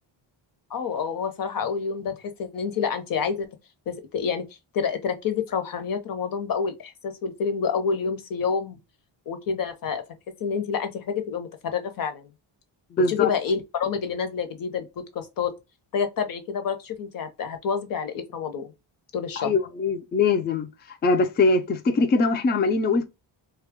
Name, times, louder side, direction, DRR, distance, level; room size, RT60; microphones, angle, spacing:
voice 1, 0.7-3.5 3.9-4.5 4.7-8.8 9.3-10.0 10.4-12.3 13.1-15.5 15.9-18.7 19.1-19.5, left 6 dB, 45° left, 0.8 m, -28 dB
voice 2, 12.9-13.3 19.4-23.1, left 3 dB, 25° left, 0.3 m, -22 dB
3.1 x 2.3 x 3.5 m
cardioid pair, 150°, 47 cm